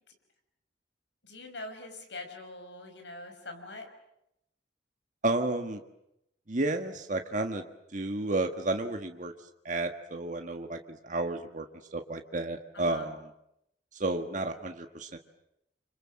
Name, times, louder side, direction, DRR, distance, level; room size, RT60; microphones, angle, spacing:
voice 1, 1.2-3.9 12.7-13.1, left 2 dB, 85° left, 5 dB, 5.4 m, -43 dB
voice 2, 5.2-5.8 6.5-7.7 7.9-9.3 9.7-11.7 11.9-13.2 13.9-15.2, right 2 dB, 45° right, 5 dB, 1.6 m, -31 dB
30.0 x 26.0 x 7.6 m, 0.81 s
head